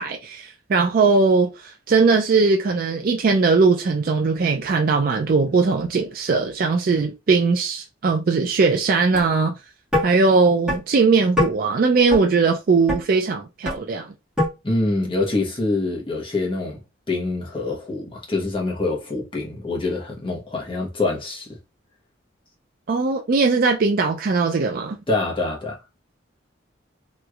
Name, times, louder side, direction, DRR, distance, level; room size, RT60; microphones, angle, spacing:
voice 1, 0.0-9.5 10.0-14.1 22.9-25.0, right 4 dB, 45° right, 0.4 m, -19 dB
sound 1, 9.1-9.3 9.9-10.0 10.7-10.8 11.4-11.5 12.1-12.2 12.9-13.0 13.6-13.8 14.4-14.5, left 1 dB, 5° right, 1.7 m, -21 dB
voice 2, 14.6-16.8 17.1-21.5 25.1-25.8, left 2 dB, 25° left, 1.0 m, -25 dB
3.0 x 3.0 x 2.3 m
head